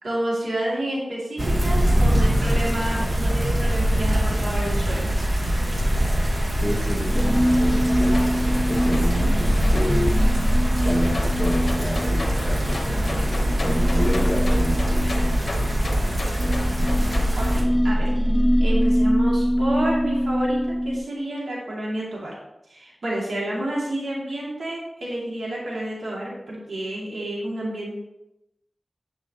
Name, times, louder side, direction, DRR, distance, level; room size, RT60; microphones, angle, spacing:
voice 1, 0.0-5.1 17.4-18.1 18.6-20.6 20.8-22.3 22.7-28.0, right 1 dB, 85° right, -5 dB, 2.3 m, -29 dB
sound 1, 1.4-17.6, equal, 40° right, 1.3 m, -23 dB
voice 2, 6.6-10.2 10.8-16.6, equal, 10° left, -7 dB, 1.9 m, -30 dB
sound 2, 7.0-15.8 16.3-21.0, equal, 15° right, 2.3 m, -23 dB
sound 3, 7.2-17.2, left 2 dB, 55° left, 0.9 m, -34 dB
9.9 x 4.9 x 2.9 m, 0.87 s
wide cardioid pair, 55°, 0 cm